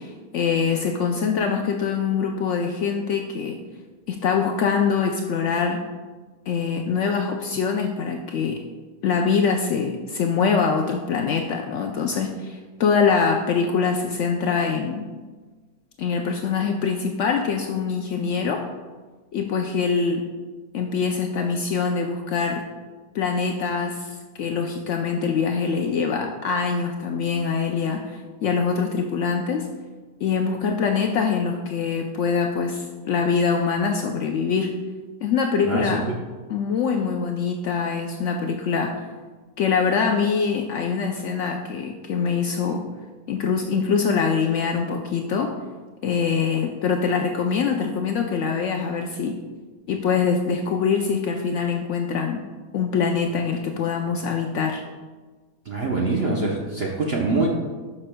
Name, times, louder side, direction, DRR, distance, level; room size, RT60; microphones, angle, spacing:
voice 1, 0.0-3.6 4.1-5.8 6.5-8.6 9.0-15.0 16.0-18.6 19.3-20.2 20.7-22.7 23.1-29.7 30.2-34.8 35.2-36.0 36.5-39.0 39.6-42.8 43.3-45.5 46.0-49.4 49.9-52.4 52.7-54.8, left 5 dB, 80° left, 3 dB, 0.6 m, -24 dB
voice 2, 35.6-36.0 55.7-57.5, right 3 dB, 55° right, -2 dB, 0.7 m, -24 dB
12.0 x 6.0 x 2.2 m, 1.4 s
omnidirectional pair, 1.8 m